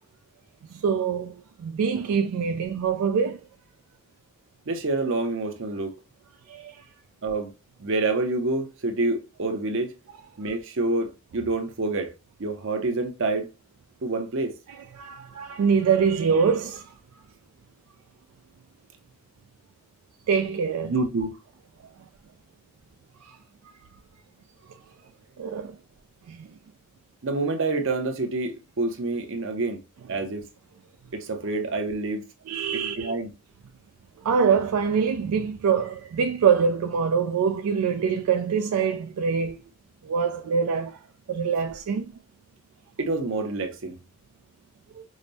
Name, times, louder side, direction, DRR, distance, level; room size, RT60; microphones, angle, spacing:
voice 1, 0.7-3.4 6.5-6.8 14.9-16.9 20.3-20.9 23.2-23.4 24.7-24.8 25.4-25.8 26.3-26.5 32.5-33.1 34.2-39.6 40.0-41.0 41.3-42.1 45.0-45.1, right 6 dB, 80° right, 0.3 m, -24 dB
voice 2, 4.7-5.9 7.2-7.5 7.8-9.9 10.4-12.1 12.4-13.5 14.0-14.5 20.8-21.4 27.2-29.8 30.1-30.4 31.1-32.2 32.7-33.3 43.0-44.0, right 2 dB, 60° right, 0.7 m, -27 dB
4.9 x 2.0 x 2.7 m
head